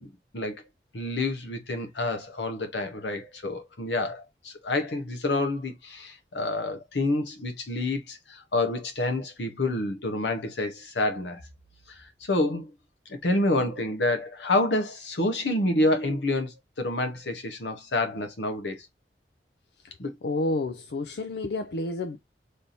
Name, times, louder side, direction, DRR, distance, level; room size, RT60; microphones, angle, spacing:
voice 1, 0.0-0.6 0.9-11.4 11.9-12.7 13.1-18.8 20.0-20.1, left 2 dB, 90° left, 1.0 m, -28 dB
voice 2, 20.2-22.2, left 2 dB, 70° left, 0.4 m, -29 dB
3.3 x 2.7 x 4.0 m
head